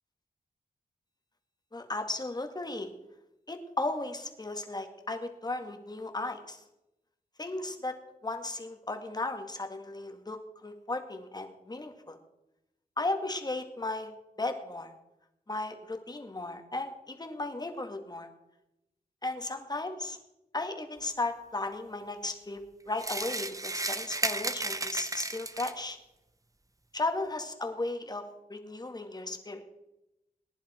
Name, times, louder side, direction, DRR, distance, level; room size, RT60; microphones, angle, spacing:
voice 1, 1.7-2.9 3.5-6.6 7.4-7.9 8.2-12.2 13.0-14.1 14.4-14.9 15.5-18.3 19.2-20.2 20.5-22.6 22.9-26.0 26.9-28.2 28.5-29.6, left 2 dB, 25° left, 5 dB, 2.0 m, -35 dB
sound 1, 23.0-25.9, right 2 dB, 20° right, 0.9 m, -33 dB
20.0 x 10.5 x 4.4 m, 0.90 s
wide cardioid pair, 85°, 15 cm